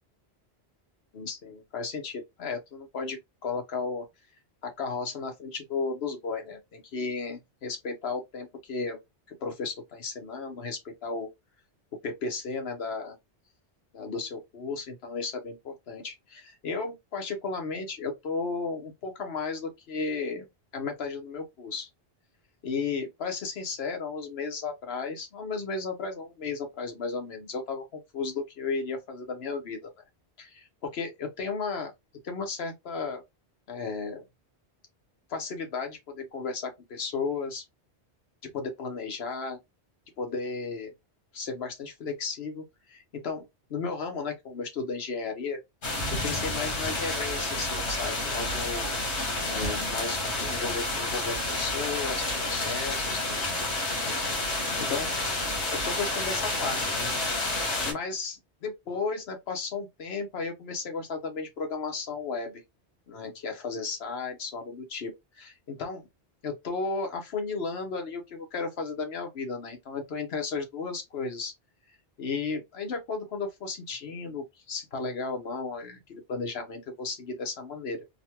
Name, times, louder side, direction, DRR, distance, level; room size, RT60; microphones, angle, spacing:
voice 1, 1.1-4.1 4.6-9.0 9.4-11.3 12.0-13.1 13.9-20.5 20.7-21.9 22.6-29.9 30.4-31.9 32.2-33.2 33.7-34.2 35.3-37.6 38.4-39.6 40.2-40.9 41.3-45.6 46.1-48.9 49.4-53.4 53.7-55.1 55.7-57.1 57.8-62.6 63.1-66.0 66.4-71.5 72.2-78.0, left 4 dB, 65° left, 1.2 m, -34 dB
sound 1, 45.8-57.9, left 2 dB, 85° left, 1.5 m, -30 dB
3.8 x 2.3 x 2.8 m
omnidirectional pair, 1.1 m